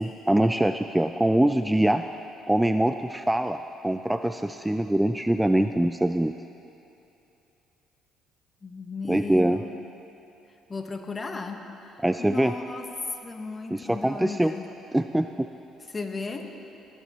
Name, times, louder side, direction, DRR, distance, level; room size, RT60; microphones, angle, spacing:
voice 1, 0.0-2.0 2.5-6.3 9.1-9.6 12.0-12.5 13.7-14.5 14.9-15.5, right 1 dB, 10° right, 8 dB, 0.3 m, -23 dB
voice 2, 8.6-9.8 10.7-11.6 12.2-12.8 13.2-14.6 15.9-16.5, left 4 dB, 30° left, 4 dB, 1.2 m, -35 dB
18.5 x 10.0 x 3.0 m, 2.9 s
supercardioid pair, 65°, 0 cm